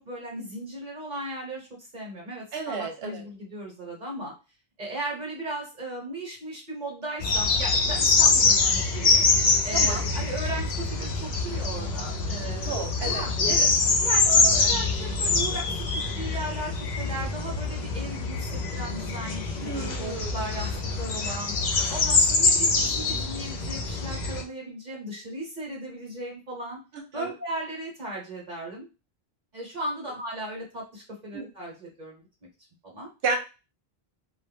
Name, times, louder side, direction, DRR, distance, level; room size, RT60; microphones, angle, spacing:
voice 1, 0.0-1.7 1.9-4.3 4.8-9.2 9.6-13.7 14.0-15.7 15.9-18.4 18.7-20.7 21.0-21.5 21.9-26.8 27.1-28.9 29.5-32.2 32.8-33.1, right 1 dB, 45° right, -1 dB, 0.9 m, -36 dB
voice 2, 2.5-3.3 9.7-10.1 12.6-13.7 19.6-20.4 27.1-27.3 31.3-31.5 33.2-33.4, right 4 dB, 75° right, 4 dB, 1.0 m, -32 dB
sound 1, 7.2-24.4, left 3 dB, 55° left, 0.5 m, -24 dB
2.2 x 2.1 x 3.2 m, 0.30 s
omnidirectional pair, 1.1 m